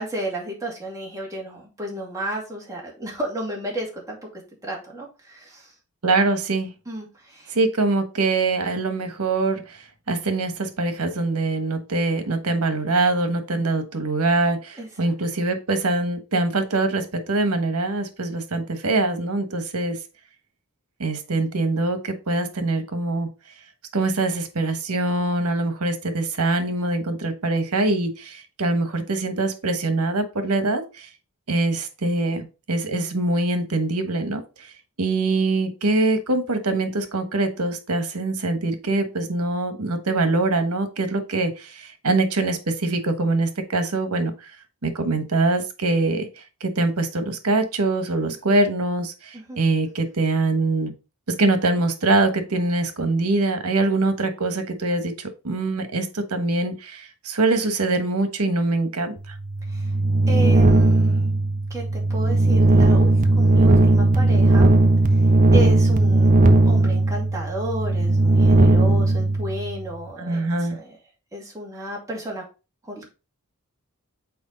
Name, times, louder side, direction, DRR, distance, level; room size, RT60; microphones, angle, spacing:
voice 1, 0.0-4.2 4.6-5.7 6.9-7.5 14.8-15.1 49.3-49.6 59.7-59.9 60.3-61.3 61.7-64.8 65.1-65.2 65.5-66.3 66.6-71.0 71.3-72.4 72.8-73.1, right 1 dB, 15° right, -2 dB, 2.4 m, -32 dB
voice 2, 6.0-6.7 7.5-9.6 10.1-20.0 21.0-23.3 23.9-31.1 31.5-34.4 35.0-44.3 44.8-46.3 46.6-50.9 51.3-59.2 70.2-70.8, right 2 dB, 85° right, 8 dB, 1.2 m, -23 dB
sound 1, 59.3-69.9, right 2 dB, 35° right, 0.6 m, -17 dB
6.2 x 4.5 x 3.9 m, 0.31 s
head